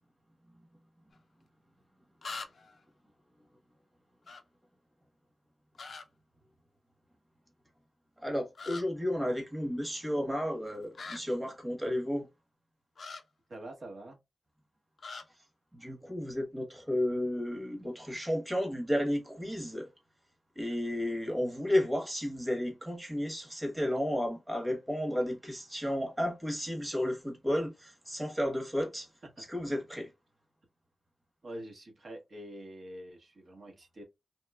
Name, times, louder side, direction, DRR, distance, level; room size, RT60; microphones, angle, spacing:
sound 1, 1.1-1.2 2.2-2.8 4.3-4.4 5.7-6.0 8.5-8.8 10.9-11.2 13.0-13.2 15.0-15.2, left 4 dB, 65° left, 0.4 m, -42 dB
voice 1, 8.2-12.2 15.7-19.9 20.6-29.1 29.4-30.1, left 1 dB, 10° right, 1.0 m, -32 dB
voice 2, 13.5-14.2 29.4-29.5 31.4-34.0, right 1 dB, 60° right, 1.0 m, -45 dB
2.9 x 2.3 x 2.2 m
wide cardioid pair, 90°, 0 cm